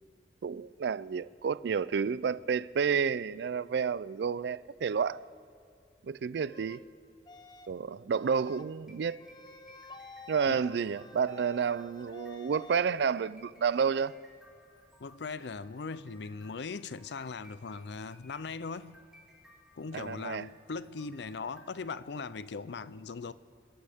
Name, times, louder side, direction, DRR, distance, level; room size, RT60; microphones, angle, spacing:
voice 1, 0.4-5.2 6.0-6.8 7.7-9.2 10.3-14.1 19.9-20.5, right 6 dB, 65° right, 0.4 m, -30 dB
sound 1, 6.4-6.8 7.3-7.8 8.1-8.7 9.2-12.8, left 2 dB, 25° left, 0.7 m, -50 dB
sound 2, 8.7-21.9, left 1 dB, 5° right, 3.2 m, -61 dB
voice 2, 15.0-19.0 19.7-23.3, left 4 dB, 70° left, 0.5 m, -39 dB
27.5 x 13.0 x 3.6 m
head